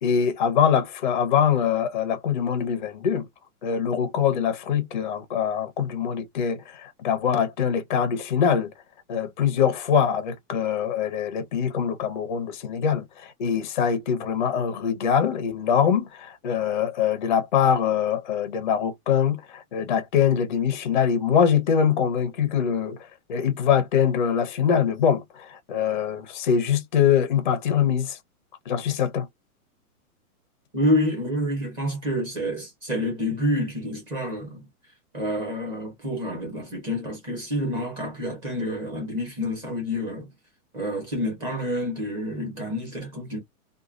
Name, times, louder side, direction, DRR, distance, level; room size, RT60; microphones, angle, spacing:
voice 1, 0.0-3.3 3.6-8.7 9.1-23.0 23.3-28.2 28.7-29.3, left 8 dB, 35° left, 0.5 m, -23 dB
voice 2, 30.7-34.6 35.1-40.3 40.7-43.4, left 1 dB, 10° right, 0.8 m, -28 dB
3.0 x 2.2 x 2.4 m
hypercardioid pair, 170°, 44 cm